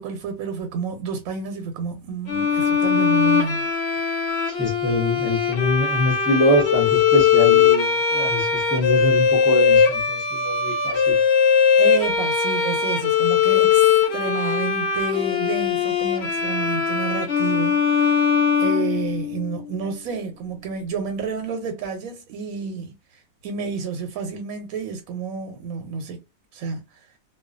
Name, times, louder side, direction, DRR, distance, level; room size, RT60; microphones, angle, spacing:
voice 1, 0.0-3.7 11.8-18.3 18.6-26.2 26.5-26.8, right 5 dB, 90° right, 1.0 m, -30 dB
Bowed string instrument, 2.3-19.5, left 6 dB, 60° left, 0.9 m, -20 dB
voice 2, 4.5-11.2, left 1 dB, 15° right, 0.5 m, -24 dB
2.3 x 2.2 x 2.4 m
omnidirectional pair, 1.4 m